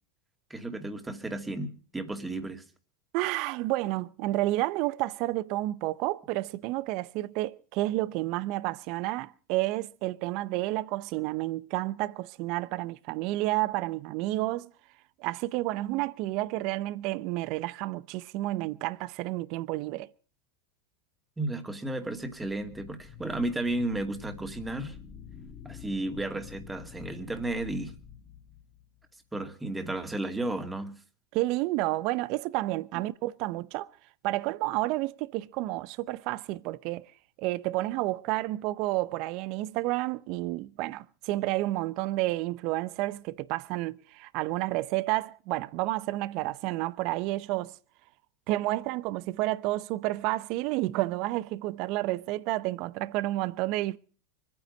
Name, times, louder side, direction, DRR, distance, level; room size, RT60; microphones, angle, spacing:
voice 1, 0.5-2.6 21.4-25.0 25.6-27.9 29.3-31.0, right 2 dB, 10° right, 2.4 m, -33 dB
voice 2, 3.1-14.7 15.2-20.1 31.3-33.9 34.2-37.1 37.4-47.7 48.5-54.0, right 18 dB, 55° right, 0.7 m, -30 dB
sound 1, 22.0-29.1, left 7 dB, 35° left, 2.2 m, -48 dB
24.5 x 9.6 x 5.2 m
hypercardioid pair, 95°, 0 cm